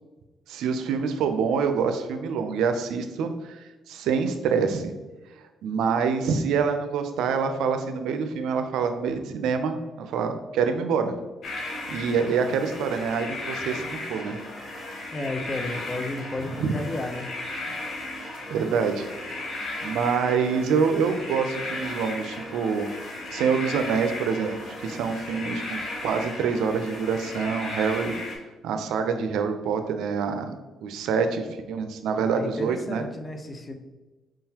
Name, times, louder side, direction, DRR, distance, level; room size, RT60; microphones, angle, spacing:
voice 1, 0.5-3.6 3.9-4.9 5.6-11.2 11.9-14.4 16.6-16.7 18.5-19.4 19.8-22.9 23.3-28.2 28.6-30.6 30.8-33.0, right 6 dB, 85° right, 7 dB, 0.5 m, -26 dB
sound 1, 11.4-28.4, left 2 dB, 60° left, 1.3 m, -35 dB
voice 2, 15.1-17.3 32.2-33.7, left 2 dB, 30° left, 5 dB, 0.7 m, -33 dB
5.0 x 3.7 x 2.8 m, 1.2 s
cardioid pair, 90°, 0 cm